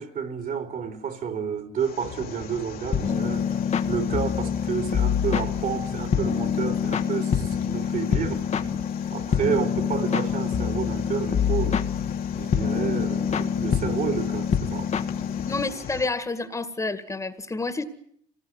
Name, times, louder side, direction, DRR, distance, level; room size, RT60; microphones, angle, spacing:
voice 1, 0.0-8.5 9.1-11.8 12.3-14.9, right 7 dB, 55° right, 3.7 m, -30 dB
sound 1, 1.8-16.1, left 8 dB, 60° left, 2.6 m, -39 dB
sound 2, 2.9-15.7, left 7 dB, 40° left, 1.6 m, -26 dB
voice 2, 15.5-17.8, left 3 dB, 20° left, 2.0 m, -29 dB
26.5 x 19.5 x 9.6 m
cardioid pair, 110°, 17 cm